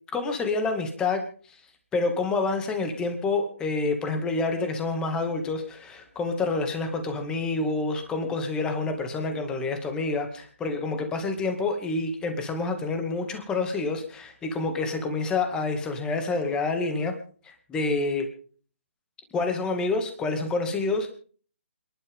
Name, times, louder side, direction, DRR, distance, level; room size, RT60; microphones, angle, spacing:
voice 1, 0.1-1.2 1.5-1.6 1.9-17.2 17.4-18.3 19.3-21.1, left 3 dB, 10° left, 6 dB, 2.2 m, -28 dB
28.5 x 11.5 x 3.7 m, 0.43 s
figure-of-eight pair, 150°, 7 cm